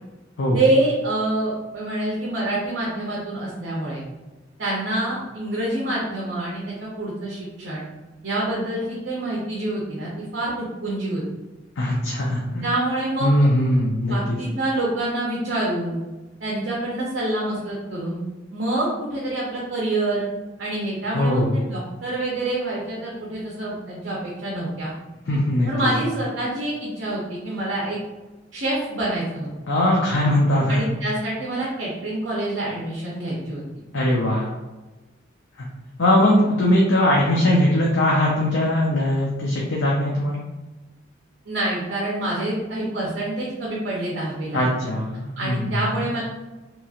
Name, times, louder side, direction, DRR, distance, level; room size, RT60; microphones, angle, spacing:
voice 1, 0.5-4.0 4.6-7.8 8.2-11.2 12.6-13.3 14.0-16.0 16.4-18.2 18.5-20.3 20.6-24.9 25.7-28.0 28.5-29.5 30.7-33.6 41.5-44.6 45.4-46.2, right 1 dB, 65° right, -5 dB, 0.7 m, -26 dB
voice 2, 11.8-12.6 13.2-14.4 21.1-21.5 25.3-25.7 29.7-30.8 33.9-34.5 35.6-35.7 36.0-40.4 44.5-45.9, left 1 dB, 80° left, -3 dB, 0.5 m, -20 dB
2.9 x 2.9 x 2.4 m, 1.1 s
head